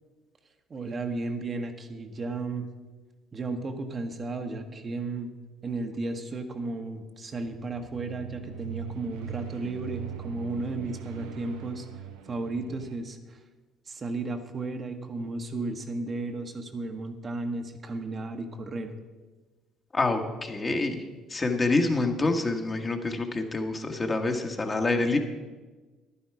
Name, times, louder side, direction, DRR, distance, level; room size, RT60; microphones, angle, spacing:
voice 1, 0.7-2.7 3.3-5.3 5.6-11.9 12.2-13.4 13.9-18.9, right 3 dB, 40° right, 5 dB, 1.2 m, -34 dB
sound 1, 7.3-12.9, right 9 dB, 75° right, 0.9 m, -41 dB
voice 2, 19.9-21.0 21.3-25.2, left 2 dB, 30° left, 4 dB, 1.5 m, -27 dB
11.0 x 10.0 x 4.8 m, 1.3 s
hypercardioid pair, 60°, 0 cm